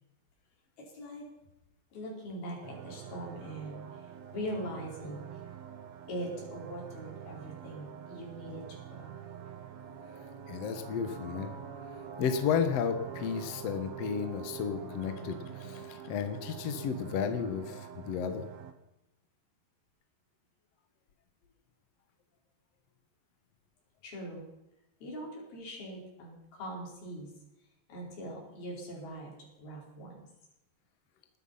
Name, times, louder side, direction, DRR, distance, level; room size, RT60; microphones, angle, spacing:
voice 1, 0.8-1.3 1.9-5.4 6.1-9.2 24.0-24.5 25.0-27.3 27.9-29.3 29.6-30.3, equal, 55° left, -2 dB, 6.4 m, -41 dB
sound 1, 2.6-18.7, right 9 dB, 85° right, 1.5 m, -45 dB
voice 2, 10.5-11.5 12.2-18.5, left 7 dB, 80° left, 8 dB, 1.4 m, -33 dB
20.0 x 12.5 x 5.7 m, 0.90 s
omnidirectional pair, 5.2 m